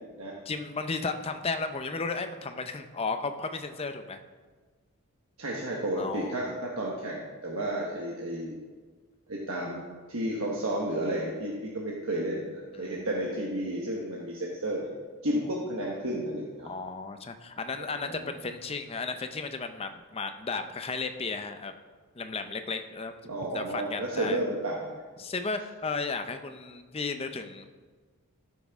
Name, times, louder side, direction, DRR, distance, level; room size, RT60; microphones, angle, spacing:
voice 1, 0.5-4.2 6.0-6.5 12.7-13.1 16.7-21.7 22.2-23.1 23.5-24.4 25.2-27.6, left 4 dB, 25° left, 8 dB, 0.5 m, -34 dB
voice 2, 5.4-8.6 9.3-9.8 10.1-14.9 15.2-16.7 18.0-18.3 23.2-24.9, right 1 dB, 70° right, -3 dB, 1.2 m, -32 dB
13.5 x 6.2 x 3.6 m, 1.4 s
head